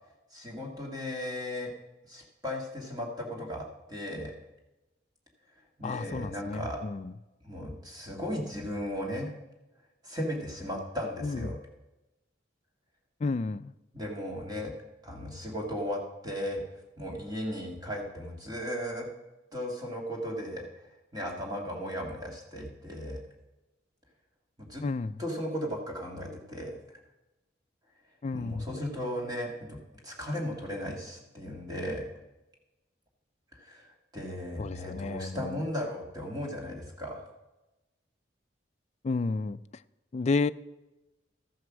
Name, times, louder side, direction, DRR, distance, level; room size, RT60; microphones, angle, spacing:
voice 1, 0.3-1.7 2.1-4.3 5.8-6.8 7.4-9.3 10.0-11.6 13.9-14.7 15.0-16.6 17.0-19.1 19.5-20.7 21.1-23.2 24.6-24.8 25.2-26.8 28.3-29.8 30.0-32.1 33.5-37.3, equal, 20° right, 2.0 m, -36 dB
voice 2, 5.8-7.1 11.2-11.6 13.2-13.7 24.8-25.2 28.2-28.7 34.6-35.6 39.0-39.6 40.1-40.5, left 3 dB, 35° left, 0.3 m, -31 dB
13.5 x 8.0 x 6.2 m
head